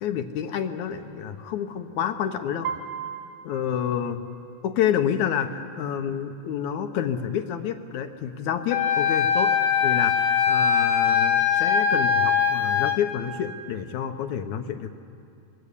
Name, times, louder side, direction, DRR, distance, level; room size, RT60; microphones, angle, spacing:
voice 1, 0.0-2.7 3.4-4.2 4.6-9.5 9.8-14.9, left 9 dB, 70° left, 8 dB, 2.0 m, -28 dB
Piano, 2.6-4.7, right 8 dB, 75° right, 1.8 m, -36 dB
Wind instrument woodwind instrument, 8.7-13.0, left 7 dB, 85° left, 3.8 m, -21 dB
25.0 x 21.0 x 8.4 m, 2.5 s
omnidirectional pair, 4.3 m